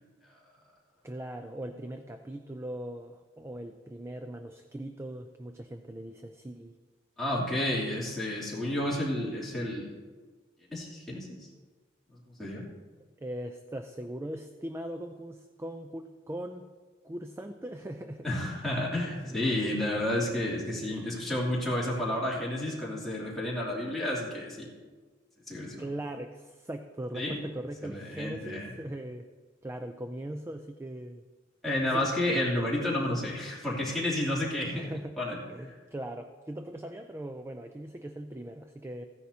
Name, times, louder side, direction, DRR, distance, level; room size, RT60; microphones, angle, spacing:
voice 1, 1.0-6.7 13.2-16.7 17.0-18.3 19.1-19.4 19.7-19.8 25.8-29.3 29.6-31.2 31.9-32.1 34.7-35.2 35.5-39.0, right 1 dB, 15° right, 7 dB, 0.4 m, -40 dB
voice 2, 7.2-9.9 10.7-11.4 12.4-12.7 18.2-24.7 25.5-25.8 27.1-27.4 27.8-28.7 31.6-34.9 35.2-35.4, left 1 dB, ahead, -7 dB, 2.9 m, -31 dB
15.0 x 10.0 x 2.8 m, 1.4 s
head